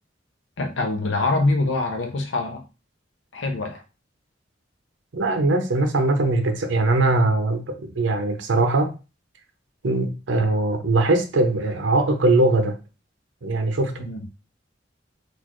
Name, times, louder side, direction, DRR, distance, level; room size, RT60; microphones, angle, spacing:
voice 1, 0.6-2.7 3.3-3.8 14.0-14.2, left 2 dB, 80° left, 0.6 m, -24 dB
voice 2, 5.1-8.9 9.8-12.8 13.4-14.1, right 2 dB, 80° right, 0.6 m, -21 dB
4.1 x 2.4 x 3.0 m
head